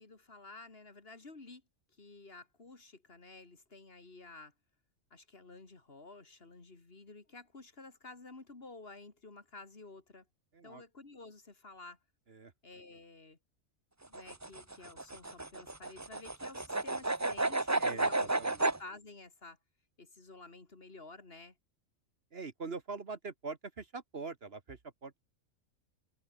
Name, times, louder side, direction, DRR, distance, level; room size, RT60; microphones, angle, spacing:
voice 1, 0.0-1.6 2.0-4.5 5.1-10.3 10.6-12.0 12.6-13.4 14.0-18.3 18.6-19.6 20.0-21.5, left 3 dB, 45° left, 2.6 m, -52 dB
sound 1, 14.0-18.8, right 2 dB, 15° right, 0.8 m, -32 dB
voice 2, 17.8-18.6 22.3-25.2, right 4 dB, 50° right, 1.7 m, -43 dB
omnidirectional pair, 1.4 m